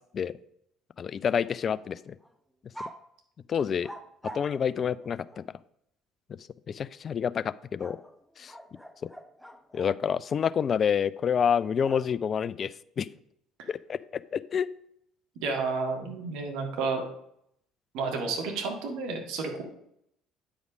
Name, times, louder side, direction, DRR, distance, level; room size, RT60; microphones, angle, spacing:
voice 1, 1.0-2.1 3.5-3.9 4.3-5.4 6.7-8.0 8.4-8.5 9.7-13.1 13.7-14.7, left 7 dB, 40° left, 17 dB, 0.3 m, -28 dB
sound 1, 1.4-1.9 2.2-2.3 2.7-3.0 3.8-5.5 7.8-10.0 11.8-12.5, right 1 dB, ahead, 0.8 m, -46 dB
voice 2, 15.4-17.0 17.9-19.6, right 4 dB, 60° right, 2 dB, 1.8 m, -31 dB
9.4 x 5.0 x 5.0 m, 0.73 s
figure-of-eight pair, 55°, 0 cm